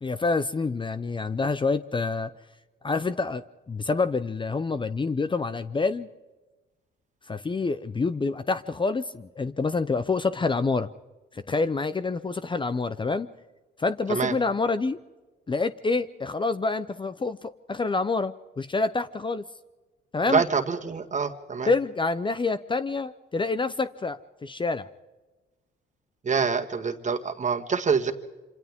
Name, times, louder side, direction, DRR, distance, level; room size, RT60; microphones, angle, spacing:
voice 1, 0.0-2.3 2.8-6.1 7.3-10.9 11.3-13.3 13.8-15.0 15.5-19.4 20.1-20.4 21.7-24.9, left 3 dB, 25° left, 13 dB, 0.7 m, -27 dB
voice 2, 20.3-21.7 26.2-28.1, right 5 dB, 40° right, 6 dB, 1.8 m, -26 dB
27.0 x 26.0 x 3.7 m, 1.2 s
cardioid pair, 90°, 20 cm